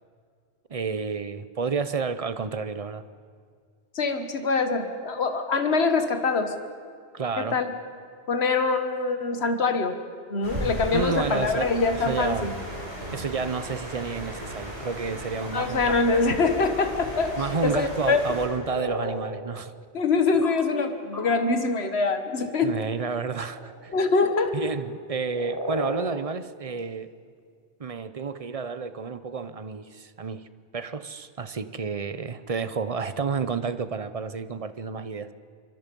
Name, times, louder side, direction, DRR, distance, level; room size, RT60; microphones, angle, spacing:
voice 1, 0.7-3.0 7.1-7.6 10.9-11.7 12.1-12.5 13.1-16.2 17.4-19.7 22.6-23.9 24.5-27.1 27.8-30.4 30.7-35.3, right 5 dB, 35° right, 12 dB, 0.8 m, -30 dB
voice 2, 4.0-6.5 7.4-7.7 8.3-10.0 10.3-12.5 15.5-18.2 19.9-22.7 23.9-24.5, left 4 dB, 70° left, 7 dB, 1.7 m, -24 dB
sound 1, 10.4-18.5, right 1 dB, 70° right, 6.0 m, -36 dB
sound 2, 18.5-19.1 20.4-20.5 21.1-21.3 22.1-22.6 23.2-24.5 25.1-26.0 26.8-26.9, left 1 dB, 15° left, 4.8 m, -33 dB
26.5 x 24.0 x 5.4 m, 2.1 s
omnidirectional pair, 1.1 m